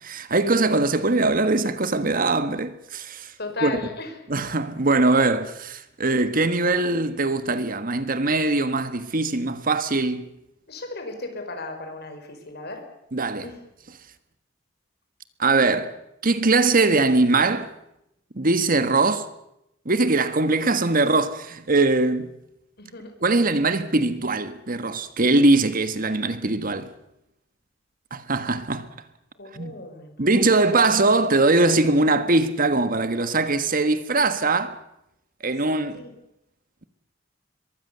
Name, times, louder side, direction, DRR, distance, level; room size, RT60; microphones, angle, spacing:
voice 1, 0.0-3.3 3.6-3.7 4.3-10.3 13.1-13.5 15.4-15.9 16.2-17.7 18.3-19.3 19.8-22.4 23.2-26.9 28.1-28.9 29.5-29.8 30.2-34.8 35.4-36.0, right 3 dB, 45° right, 1.5 m, -21 dB
voice 2, 3.4-4.2 10.7-12.8 13.4-13.6 22.8-23.2 29.4-30.6 30.9-31.0 35.9-36.1, left 3 dB, 55° left, 5.2 m, -35 dB
23.5 x 22.5 x 6.9 m
head